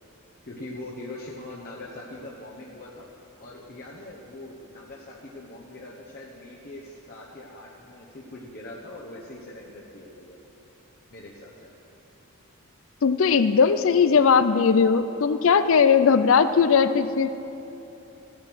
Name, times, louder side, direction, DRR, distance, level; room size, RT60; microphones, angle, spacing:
voice 1, 0.5-3.1 3.4-10.4 11.1-11.8, left 1 dB, 45° left, -4 dB, 1.1 m, -42 dB
voice 2, 13.0-17.4, left 6 dB, 60° left, 12 dB, 0.4 m, -19 dB
15.0 x 9.3 x 6.1 m, 3.0 s
head